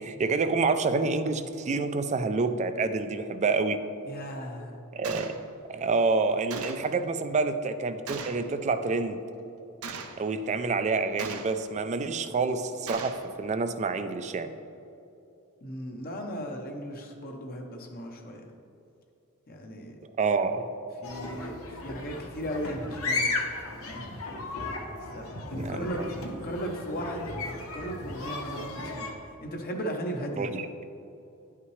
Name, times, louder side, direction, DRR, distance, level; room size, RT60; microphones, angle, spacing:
voice 1, 0.0-3.8 4.9-5.3 5.7-9.2 10.2-14.5 20.2-20.6 25.6-26.1 30.4-30.7, right 4 dB, 35° right, 10 dB, 0.4 m, -28 dB
voice 2, 4.0-4.8 15.6-18.5 19.5-20.0 21.0-23.4 23.8-24.2 25.1-30.7, equal, 45° left, 2 dB, 0.8 m, -37 dB
Gunshot gunfire, 5.0-5.4 6.5-6.9 8.1-8.5 9.8-10.2 11.2-11.7 12.9-13.3, right 5 dB, 80° right, 0.7 m, -38 dB
sound 1, 21.0-29.1, left 3 dB, 75° left, 1.0 m, -35 dB
10.5 x 5.7 x 3.2 m, 2.7 s
head